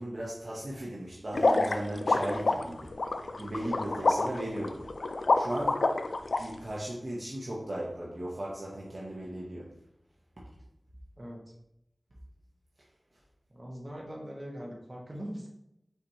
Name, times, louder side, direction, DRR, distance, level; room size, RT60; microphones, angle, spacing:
voice 1, 0.0-4.9 5.3-5.9 6.4-9.8, right 1 dB, 55° right, -5 dB, 0.9 m, -37 dB
sound 1, 1.3-6.4, left 2 dB, 85° left, 0.3 m, -27 dB
voice 2, 13.5-15.5, equal, 35° right, -2 dB, 1.2 m, -41 dB
4.5 x 4.1 x 2.7 m, 0.82 s
wide cardioid pair, 70°, 0 cm